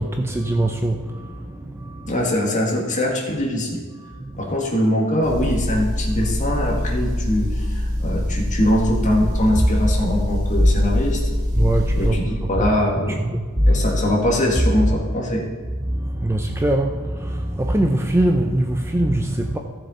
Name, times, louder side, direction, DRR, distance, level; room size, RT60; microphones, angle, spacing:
voice 1, 0.0-2.2 4.0-4.6 8.0-8.1 11.6-12.7 13.0-13.8 15.8-19.6, right 1 dB, 10° right, 4 dB, 0.5 m, -23 dB
voice 2, 2.1-3.8 4.4-11.2 11.9-13.3 13.7-15.4, left 1 dB, 35° left, -1 dB, 2.0 m, -22 dB
Motor vehicle (road) / Engine, 5.2-12.1, left 1 dB, 50° right, 3.4 m, -24 dB
sound 1, 9.5-12.6 13.6-14.9, equal, 30° right, 2.4 m, -22 dB
14.5 x 6.7 x 4.4 m, 1.5 s
head